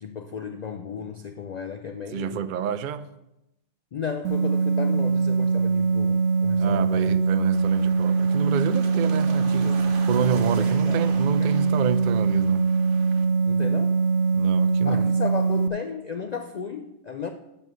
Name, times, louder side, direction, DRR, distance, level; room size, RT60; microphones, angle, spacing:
voice 1, 0.0-2.5 3.9-7.2 8.9-9.9 10.6-11.7 13.5-14.0 14.8-17.3, left 6 dB, 85° left, 0.3 m, -35 dB
voice 2, 2.1-3.1 6.6-12.7 14.3-15.1, right 8 dB, 70° right, 0.4 m, -29 dB
sound 1, 4.2-15.7, right 5 dB, 90° right, 1.1 m, -22 dB
sound 2, 7.5-13.2, right 3 dB, 45° right, 1.1 m, -42 dB
7.5 x 7.1 x 6.2 m
omnidirectional pair, 1.4 m